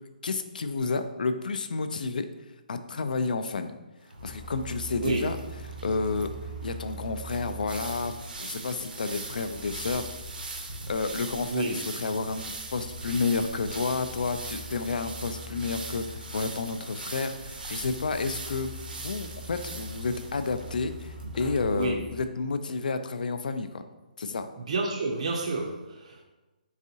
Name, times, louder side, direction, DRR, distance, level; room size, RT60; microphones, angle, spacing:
voice 1, 0.2-2.3 2.7-3.7 4.2-5.4 5.8-6.3 6.6-10.0 10.9-12.4 12.7-18.7 19.0-23.8 24.2-24.5, left 4 dB, 65° left, 9 dB, 0.4 m, -30 dB
sound 1, 4.1-21.9, right 2 dB, 90° right, 0.7 m, -41 dB
sound 2, 4.2-22.2, right 1 dB, 20° left, 0.7 m, -45 dB
voice 2, 5.0-5.3 11.4-11.8 21.7-22.0 24.6-26.2, right 3 dB, 45° right, 1 dB, 0.4 m, -29 dB
4.0 x 3.6 x 2.7 m, 1.1 s
hypercardioid pair, 170°, 5 cm